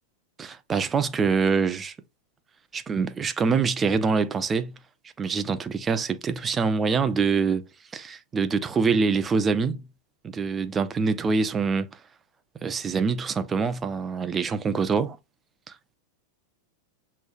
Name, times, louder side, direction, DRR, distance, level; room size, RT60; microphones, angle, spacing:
voice 1, 0.4-2.0 2.7-4.8 5.2-7.6 7.9-9.8 10.2-11.9 12.6-15.2 15.7-16.0, right 5 dB, 20° right, 0.5 m, -25 dB
6.2 x 3.2 x 2.4 m
figure-of-eight pair, 90°, 0 cm